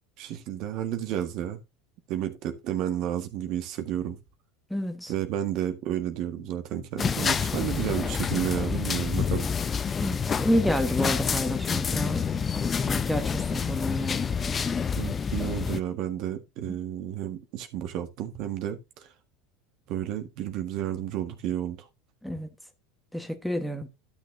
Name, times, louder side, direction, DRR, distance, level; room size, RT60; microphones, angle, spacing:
voice 1, 0.2-1.6 2.1-4.2 5.1-9.5 14.9-19.1 19.9-21.8, right 11 dB, 55° right, 1.6 m, -31 dB
voice 2, 4.7-5.1 10.0-12.5 12.8-14.3 16.7-16.8 22.2-22.5 23.1-23.9, equal, ahead, 1.4 m, -29 dB
sound 1, 7.0-15.8, left 6 dB, 25° left, 0.6 m, -28 dB
12.5 x 6.4 x 2.7 m
hypercardioid pair, 95°, 0 cm